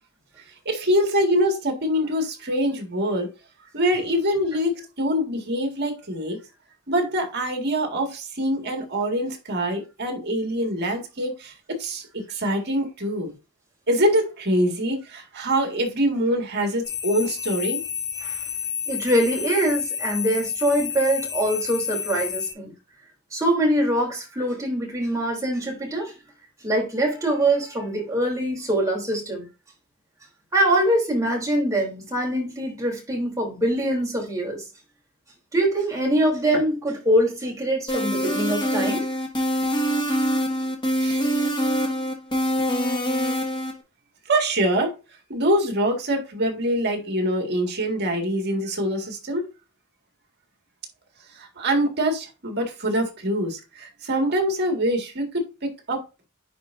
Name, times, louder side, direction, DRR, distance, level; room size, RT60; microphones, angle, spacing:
voice 1, 0.7-3.3 3.7-6.4 6.9-13.3 13.9-17.8 41.0-41.2 44.3-44.9 45.3-49.5 51.3-56.3, equal, 50° right, 1.9 m, -24 dB
sound 1, 16.8-22.5, left 8 dB, 80° left, 3.7 m, -30 dB
voice 2, 18.9-22.7 23.3-26.1 26.6-29.4 30.5-34.6 35.5-39.1, right 1 dB, 15° right, 3.2 m, -23 dB
sound 2, 37.9-43.7, equal, 20° left, 1.6 m, -24 dB
10.0 x 4.4 x 2.6 m
head